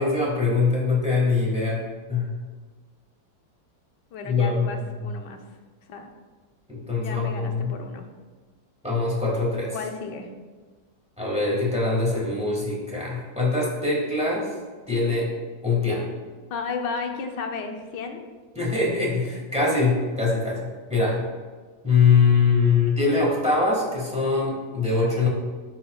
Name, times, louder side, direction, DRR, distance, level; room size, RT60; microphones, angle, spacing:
voice 1, 0.0-1.8 2.1-2.3 4.2-5.1 6.7-7.7 8.8-9.8 11.2-14.5 14.9-15.3 15.6-16.1 18.5-21.2 21.8-25.3, left 4 dB, 5° right, -4 dB, 1.5 m, -23 dB
voice 2, 4.1-5.4 5.9-6.1 7.0-8.1 9.7-10.3 16.5-18.2, left 4 dB, 75° left, 4 dB, 1.3 m, -33 dB
11.0 x 4.3 x 2.3 m, 1.4 s
omnidirectional pair, 1.9 m